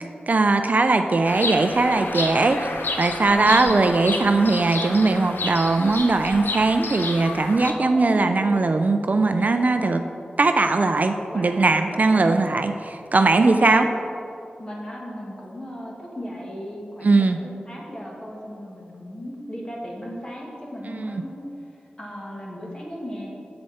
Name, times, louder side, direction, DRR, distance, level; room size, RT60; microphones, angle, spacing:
voice 1, 0.3-2.6 3.0-10.0 10.4-13.9 17.0-17.4 20.9-21.2, right 3 dB, 50° right, 7 dB, 0.4 m, -20 dB
Bird vocalization bird call bird song, 1.3-7.7, left 3 dB, 85° left, 0.6 m, -31 dB
voice 2, 3.3-3.8 5.7-5.9 7.6-8.7 11.3-12.5 13.6-13.9 14.6-21.5 22.0-23.3, equal, 25° left, -3 dB, 1.8 m, -36 dB
7.8 x 7.2 x 4.2 m, 2.5 s
wide cardioid pair, 75°, 3 cm